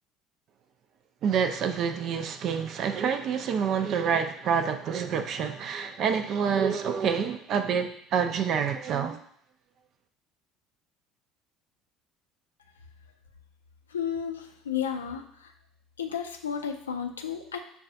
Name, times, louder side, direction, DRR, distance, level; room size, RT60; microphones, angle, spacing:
voice 1, 1.2-9.3, right 7 dB, 50° right, 8 dB, 0.4 m, -27 dB
voice 2, 13.9-15.5 16.0-17.6, left 8 dB, 85° left, 5 dB, 0.4 m, -32 dB
6.2 x 2.3 x 2.6 m, 0.68 s
hypercardioid pair, 65°, 0 cm